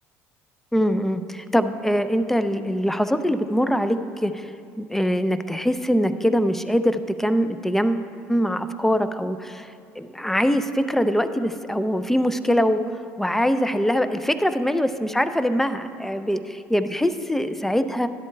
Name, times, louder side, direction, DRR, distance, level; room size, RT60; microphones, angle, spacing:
voice 1, 0.7-4.5 4.8-12.8 13.2-16.4 16.7-18.1, equal, 5° left, 11 dB, 0.5 m, -23 dB
13.0 x 11.0 x 2.3 m, 2.4 s
hypercardioid pair, 65°, 7 cm